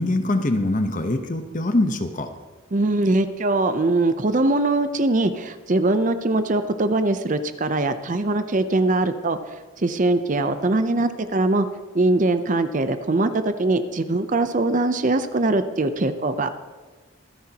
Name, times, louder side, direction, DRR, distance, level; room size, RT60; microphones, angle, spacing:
voice 1, 0.0-2.3, left 1 dB, 40° left, 7 dB, 0.9 m, -23 dB
voice 2, 2.7-11.7 11.9-16.6, right 2 dB, 35° right, 10 dB, 0.6 m, -22 dB
24.5 x 9.9 x 2.9 m, 1.3 s
head